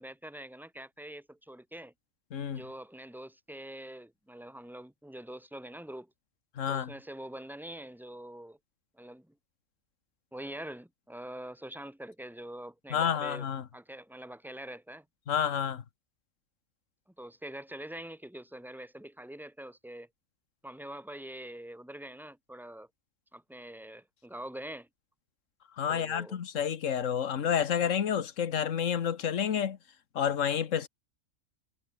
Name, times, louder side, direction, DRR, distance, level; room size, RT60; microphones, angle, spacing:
voice 1, 0.0-1.9 2.5-6.1 6.7-8.6 8.9-9.3 10.3-13.5 13.7-15.1 17.2-20.1 20.6-22.9 23.3-24.9 25.9-26.4, right 1 dB, ahead, 2.3 m, -44 dB
voice 2, 2.3-2.6 6.6-6.9 12.9-13.6 15.3-15.8 25.8-29.8 30.1-30.9, left 8 dB, 75° left, 1.5 m, -29 dB
omnidirectional pair, 1.3 m